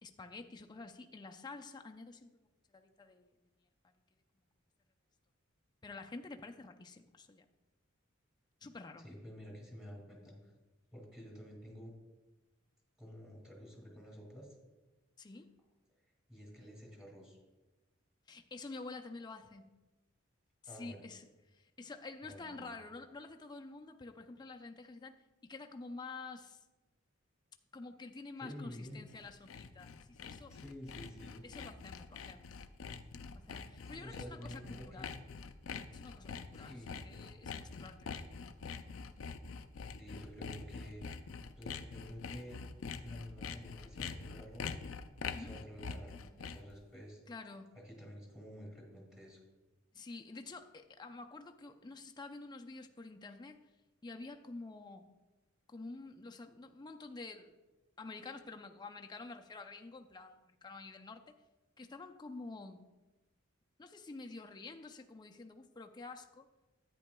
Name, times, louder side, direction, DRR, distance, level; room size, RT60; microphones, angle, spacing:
voice 1, 0.0-3.3 5.8-7.4 8.6-9.1 15.2-15.6 18.3-19.7 20.6-26.6 27.7-30.6 31.4-32.5 33.3-35.1 35.9-36.7 37.0-38.1 45.3-45.6 47.3-47.8 49.9-53.6 54.0-55.0 55.7-57.5 58.0-61.4 61.8-62.8 63.8-66.5, left 3 dB, 20° left, 4 dB, 0.4 m, -49 dB
voice 2, 9.0-10.5 10.9-12.0 13.0-14.5 16.3-17.4 20.7-21.0 22.2-22.7 28.4-29.0 30.5-31.5 33.8-35.2 36.5-37.1 39.8-41.1 41.6-42.7 43.0-44.8 45.4-47.2 47.7-49.4, equal, 5° right, -1 dB, 2.1 m, -50 dB
Sawing, 28.9-46.8, left 5 dB, 85° left, 0.4 m, -45 dB
10.5 x 9.0 x 2.2 m, 1.1 s
head